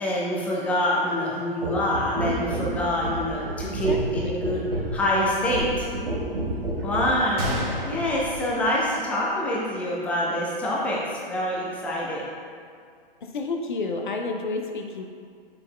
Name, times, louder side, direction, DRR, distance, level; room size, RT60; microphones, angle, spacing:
voice 1, 0.0-4.6 4.9-5.9 6.8-7.5 7.8-12.3, left 1 dB, 5° left, -5 dB, 0.7 m, -26 dB
sound 1, 1.6-7.2 8.0-8.2, right 1 dB, 75° right, 1.1 m, -30 dB
voice 2, 3.6-4.4 13.2-15.0, left 3 dB, 55° left, 3 dB, 0.7 m, -31 dB
Gunshot gunfire, 7.4-9.4 9.7-9.8 10.5-10.7, equal, 40° right, 1.4 m, -32 dB
8.0 x 6.9 x 2.2 m, 2.2 s
figure-of-eight pair, 115°, 29 cm